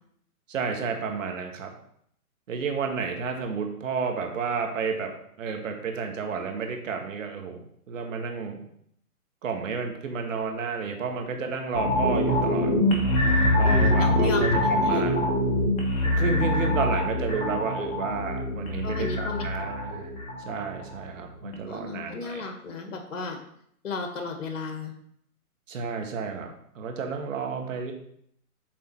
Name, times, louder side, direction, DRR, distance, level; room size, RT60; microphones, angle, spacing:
voice 1, 0.5-1.7 2.5-5.1 5.4-8.6 9.4-12.7 13.6-15.3 16.0-20.1 20.5-22.5 25.7-26.5 26.8-27.9, right 5 dB, 55° right, 3 dB, 1.7 m, -31 dB
sound 1, 11.7-21.1 21.4-21.5, left 1 dB, 15° left, 1.1 m, -24 dB
voice 2, 13.6-15.0 18.8-19.7 21.7-23.4 23.8-24.9, left 4 dB, 55° left, 4 dB, 1.8 m, -34 dB
7.6 x 3.9 x 5.7 m, 0.69 s
hypercardioid pair, 140°, 46 cm